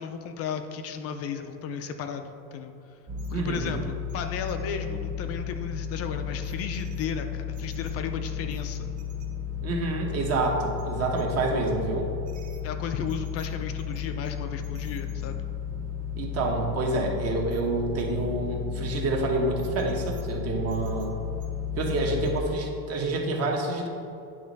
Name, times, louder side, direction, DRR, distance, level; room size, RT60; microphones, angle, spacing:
voice 1, 0.0-2.7 3.3-8.9 12.6-15.4, left 6 dB, 40° left, 7 dB, 0.4 m, -34 dB
sound 1, 3.1-22.4, left 8 dB, 20° right, 0.5 m, -34 dB
voice 2, 3.3-3.7 9.6-12.1 16.1-21.1 21.8-23.9, right 2 dB, 40° right, 1 dB, 1.1 m, -28 dB
9.2 x 3.1 x 5.2 m, 2.7 s
cardioid pair, 145°, 38 cm